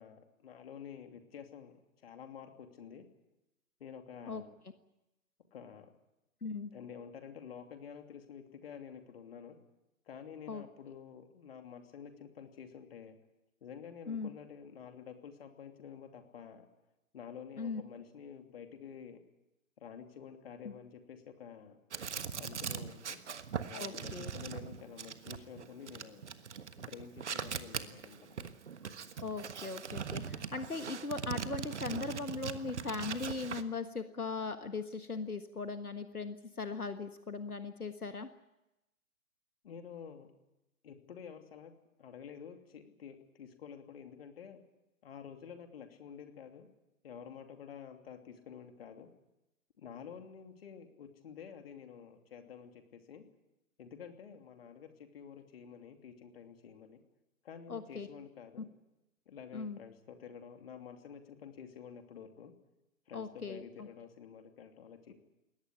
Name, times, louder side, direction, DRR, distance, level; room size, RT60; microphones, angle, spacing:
voice 1, 0.0-3.0 3.8-4.5 5.5-5.9 6.7-9.6 10.1-13.2 13.6-16.7 17.1-19.2 19.8-21.8 22.4-23.2 23.6-26.3 26.8-28.5 39.6-40.3 40.8-41.7 42.0-44.6 45.0-46.7 47.0-49.1 49.8-53.2 53.8-57.0 57.4-58.7 59.3-62.5 63.1-65.1, left 7 dB, 40° left, 6 dB, 2.9 m, -50 dB
voice 2, 6.4-6.7 10.5-10.6 14.1-14.3 17.6-17.8 20.6-20.7 23.7-24.3 29.2-38.3 57.7-58.1 59.5-59.8 63.1-63.9, left 4 dB, 80° left, 9 dB, 1.6 m, -39 dB
sound 1, 21.9-33.6, right 7 dB, 50° right, 1.5 m, -41 dB
21.5 x 18.0 x 9.9 m, 0.94 s
figure-of-eight pair, 135°, 44 cm